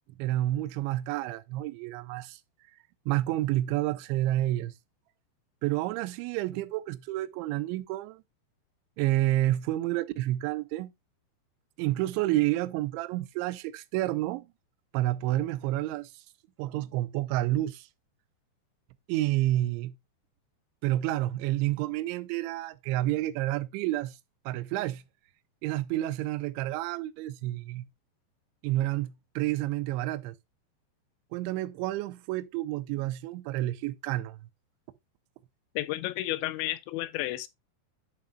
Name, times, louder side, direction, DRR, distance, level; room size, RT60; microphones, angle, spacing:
voice 1, 0.2-2.4 3.1-4.7 5.6-8.2 9.0-10.9 11.8-14.5 14.9-16.2 16.6-17.9 19.1-20.0 20.8-24.2 24.5-25.0 25.6-27.9 28.6-30.4 31.3-34.5, right 15 dB, 85° right, 2.9 m, -29 dB
voice 2, 35.8-37.5, left 16 dB, 85° left, 2.8 m, -32 dB
10.5 x 7.3 x 2.3 m
omnidirectional pair, 5.2 m